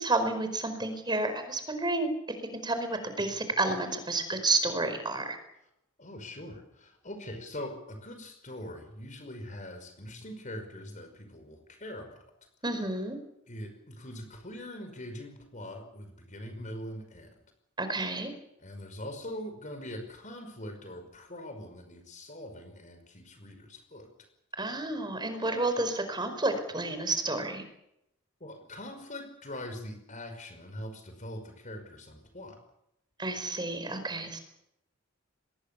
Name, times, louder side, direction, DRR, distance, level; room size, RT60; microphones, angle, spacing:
voice 1, 0.0-2.1 2.6-5.4 12.6-13.2 17.8-18.3 24.6-27.6 33.2-34.4, right 2 dB, 20° right, 8 dB, 4.9 m, -30 dB
voice 2, 6.0-12.2 13.5-17.3 18.6-24.1 28.4-32.6, left 1 dB, 40° left, 6 dB, 5.5 m, -42 dB
24.5 x 21.0 x 7.0 m, 0.81 s
head